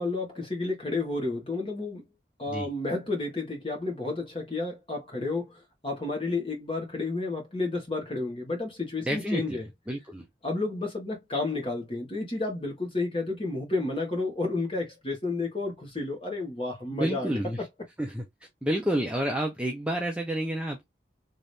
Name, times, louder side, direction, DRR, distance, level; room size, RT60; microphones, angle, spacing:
voice 1, 0.0-2.0 2.4-9.6 10.4-17.4, left 3 dB, 30° left, 1.5 m, -31 dB
voice 2, 9.0-9.6 9.9-10.3 16.9-17.7 18.0-20.8, right 1 dB, 5° right, 0.6 m, -30 dB
3.3 x 3.0 x 2.7 m
head